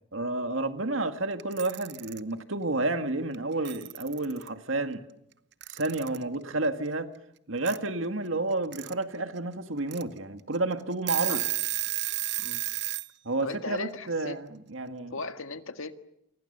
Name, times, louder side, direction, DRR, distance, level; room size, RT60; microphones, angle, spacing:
voice 1, 0.1-5.0 5.7-7.1 7.5-11.4 13.2-15.1, right 2 dB, 70° right, 1.9 m, -30 dB
Alarm / Clock, 1.4-2.2 3.3-3.4 3.6-4.5 5.6-6.2 7.6-7.8 8.5-8.9 9.4-9.5 9.9-10.0 10.5-10.6 10.9-13.1, right 16 dB, 50° right, 0.9 m, -32 dB
voice 2, 13.4-14.4 15.1-15.9, left 3 dB, 80° left, 1.7 m, -37 dB
29.0 x 24.5 x 6.8 m
head